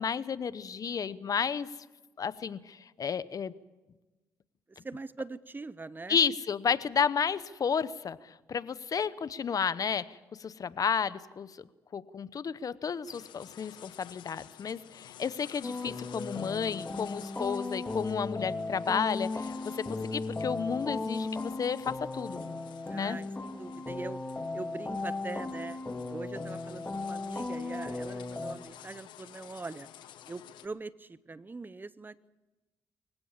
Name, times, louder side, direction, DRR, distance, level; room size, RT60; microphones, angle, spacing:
voice 1, 0.0-1.7 2.2-3.5 6.1-10.0 10.4-11.5 11.9-22.4 23.0-23.2, left 6 dB, 50° left, 16 dB, 0.9 m, -32 dB
voice 2, 4.8-6.2 22.9-24.2 24.5-25.8 26.1-29.9 30.3-32.3, right 3 dB, 25° right, 17 dB, 0.8 m, -42 dB
sound 1, 13.1-30.7, left 11 dB, 75° left, 1.1 m, -52 dB
sound 2, 15.6-28.5, left 3 dB, 20° left, 1.8 m, -36 dB
24.5 x 16.0 x 7.4 m, 1.1 s
supercardioid pair, 60°, 8 cm